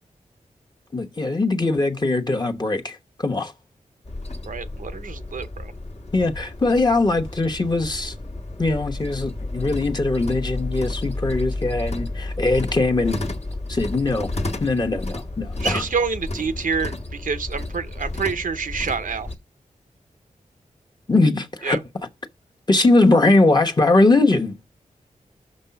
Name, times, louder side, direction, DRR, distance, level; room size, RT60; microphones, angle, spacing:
voice 1, 0.9-3.5 6.1-8.1 8.6-13.2 13.7-14.3 14.6-15.8 21.1-21.8 22.7-24.6, left 2 dB, 30° left, 1.1 m, -20 dB
sound 1, 4.0-19.3, left 2 dB, 50° left, 1.3 m, -31 dB
voice 2, 4.4-5.7 15.6-19.3 21.6-21.8, right 5 dB, 70° right, 0.7 m, -27 dB
6.1 x 5.2 x 5.7 m
wide cardioid pair, 75°, 14 cm